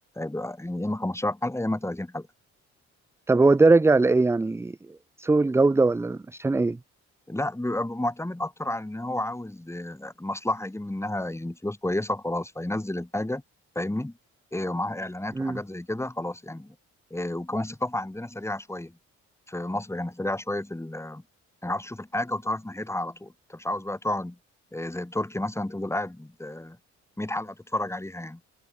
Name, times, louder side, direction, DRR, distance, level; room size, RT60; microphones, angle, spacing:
voice 1, 0.1-2.3 7.3-13.4 13.7-14.1 14.5-16.7 17.1-19.0 19.5-21.2 21.6-24.4 24.7-26.8 27.2-28.4, left 1 dB, 10° left, 6.6 m, -31 dB
voice 2, 3.3-4.7 5.2-6.8 15.4-15.6, right 3 dB, 10° right, 0.4 m, -20 dB
cardioid pair, 90°, 30 cm